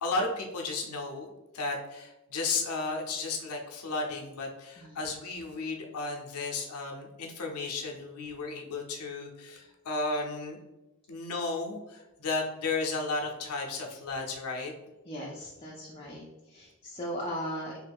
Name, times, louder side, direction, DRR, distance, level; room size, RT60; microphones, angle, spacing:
voice 1, 0.0-10.6 11.1-14.7, left 3 dB, 85° left, 1 dB, 0.5 m, -34 dB
voice 2, 15.1-17.8, equal, 25° left, -3 dB, 0.4 m, -38 dB
3.1 x 2.3 x 3.3 m, 1.0 s
head